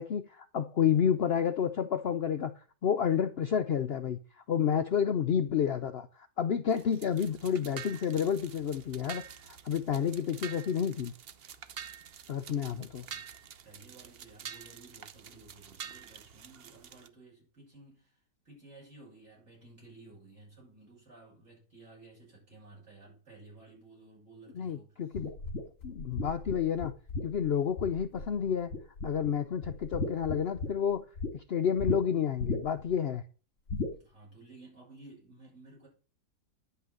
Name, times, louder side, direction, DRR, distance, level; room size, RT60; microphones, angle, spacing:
voice 1, 0.0-2.5 2.8-9.2 9.5-11.1 12.3-13.0 24.5-25.3 25.8-26.9 27.2-28.7 29.0-31.1 31.3-33.2, left 8 dB, 75° left, 0.5 m, -30 dB
sound 1, 6.7-17.1, right 8 dB, 55° right, 0.6 m, -47 dB
voice 2, 12.5-13.3 13.6-18.2 18.4-25.0 33.9-35.9, right 2 dB, 40° right, 7.4 m, -55 dB
sound 2, 25.2-28.4 28.7-29.3 29.6-31.3 31.8-32.0 32.4-32.9 33.7-34.0, left 3 dB, 50° left, 2.2 m, -35 dB
10.5 x 5.8 x 7.6 m
omnidirectional pair, 1.8 m